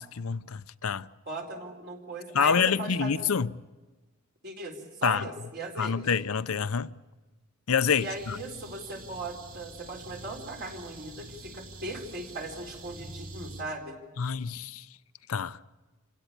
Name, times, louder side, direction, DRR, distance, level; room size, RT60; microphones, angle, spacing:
voice 1, 0.0-1.1 2.3-3.5 5.0-5.2 5.8-6.9 7.7-8.4 14.2-14.8 15.3-15.6, left 6 dB, 85° left, 0.7 m, -27 dB
voice 2, 1.3-3.1 4.4-6.0 8.0-14.0, right 2 dB, 50° right, 4.4 m, -38 dB
sound 1, 7.9-13.6, right 2 dB, 85° right, 2.8 m, -46 dB
28.0 x 17.0 x 8.7 m
head